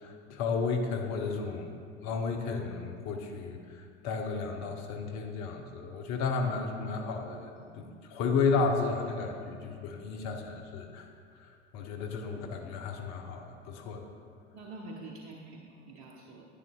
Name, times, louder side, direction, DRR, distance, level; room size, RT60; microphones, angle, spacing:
voice 1, 0.0-1.7 2.0-3.6 4.0-11.1 11.4-14.0, left 4 dB, 50° left, 3 dB, 0.9 m, -33 dB
voice 2, 7.6-8.0 9.5-9.6 14.5-16.4, right 2 dB, 50° right, -1 dB, 1.0 m, -47 dB
11.5 x 9.3 x 2.3 m, 2.3 s
figure-of-eight pair, 65°, 36 cm